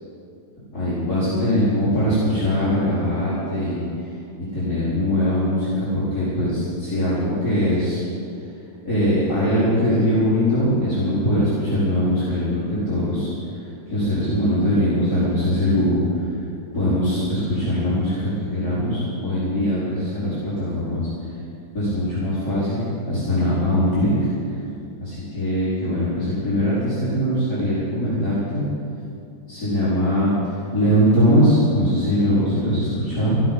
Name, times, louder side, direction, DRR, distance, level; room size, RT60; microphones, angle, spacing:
voice 1, 0.7-3.8 4.5-8.0 8.9-13.3 13.9-16.0 16.7-21.1 21.7-22.8 23.1-24.1 24.5-24.6 25.0-28.7 29.5-30.3 30.7-33.4, equal, 50° left, -12 dB, 5.3 m, -21 dB
16.0 x 15.0 x 5.9 m, 2.6 s
omnidirectional pair, 2.1 m